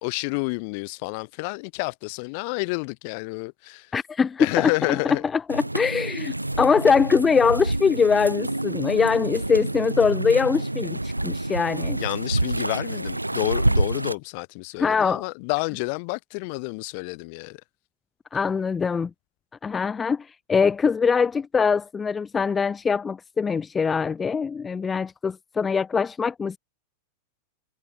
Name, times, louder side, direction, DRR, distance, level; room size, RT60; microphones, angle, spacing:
voice 1, 0.0-3.9 4.4-5.2 11.9-17.6, left 32 dB, 45° left, 1.9 m, -29 dB
voice 2, 3.9-5.0 5.3-12.0 14.8-15.3 18.3-19.1 19.6-26.6, left 5 dB, 15° left, 0.3 m, -23 dB
sound 1, 5.5-14.2, right 1 dB, 85° right, 1.4 m, -27 dB
figure-of-eight pair, 90°, 0 cm